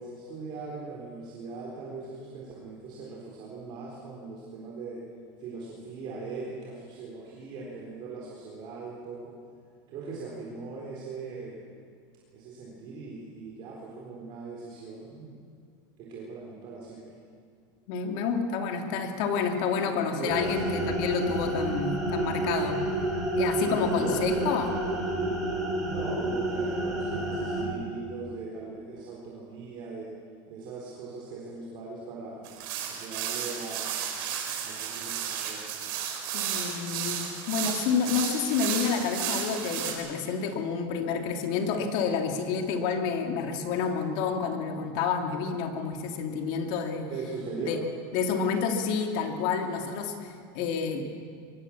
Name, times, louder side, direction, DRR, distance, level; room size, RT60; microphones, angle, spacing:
voice 1, 0.0-5.0 5.4-9.3 9.9-11.6 12.3-15.4 16.0-17.0 19.8-20.6 23.6-24.5 25.8-30.1 30.5-32.5 32.8-33.9 34.6-35.7 47.1-47.8, right 4 dB, 40° right, -4 dB, 3.9 m, -39 dB
voice 2, 17.9-22.8 23.3-24.7 36.3-47.1 47.5-47.8 48.1-51.0, left 6 dB, 55° left, 4 dB, 2.8 m, -29 dB
sound 1, 20.3-27.6, right 1 dB, ahead, 5.6 m, -29 dB
sound 2, 32.4-39.9, right 9 dB, 65° right, 4.7 m, -33 dB
23.0 x 21.5 x 7.4 m, 2.2 s
supercardioid pair, 170°, 12 cm